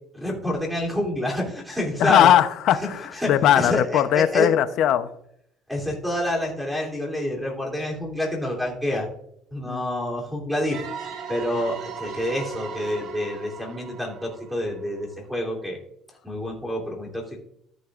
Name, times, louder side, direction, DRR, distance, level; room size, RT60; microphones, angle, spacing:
voice 1, 0.1-2.3 3.2-4.5 5.7-9.1 9.5-10.8 11.3-15.8 16.2-17.4, left 1 dB, ahead, -1 dB, 3.1 m, -28 dB
voice 2, 2.0-5.1 9.6-9.8, left 11 dB, 55° left, 11 dB, 0.7 m, -19 dB
sound 1, 10.7-15.3, right 6 dB, 55° right, 1.5 m, -38 dB
13.5 x 9.6 x 2.5 m, 0.73 s
cardioid pair, 150°, 0 cm